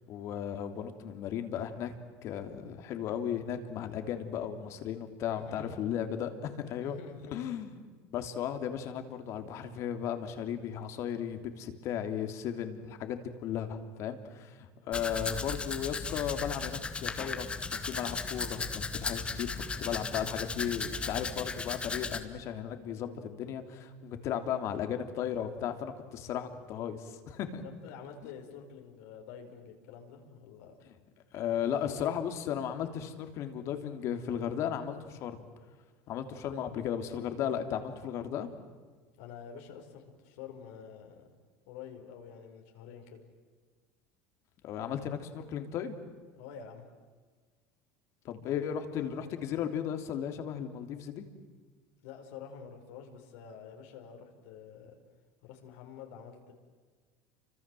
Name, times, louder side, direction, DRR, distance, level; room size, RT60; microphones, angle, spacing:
voice 1, 0.1-1.9 2.2-7.0 7.3-7.8 8.1-27.6 31.3-35.4 36.1-38.5 44.6-46.0 48.2-51.2, left 9 dB, 50° left, 7 dB, 3.1 m, -35 dB
voice 2, 5.3-5.7 6.8-7.5 27.6-30.7 39.2-41.3 41.7-43.2 46.3-46.8 52.0-54.9 55.4-56.5, left 7 dB, 80° left, 2 dB, 5.0 m, -48 dB
Domestic sounds home sounds, 14.9-22.2, left 4 dB, 15° left, 2.0 m, -36 dB
30.0 x 26.0 x 7.8 m, 1.5 s
supercardioid pair, 130°, 6 cm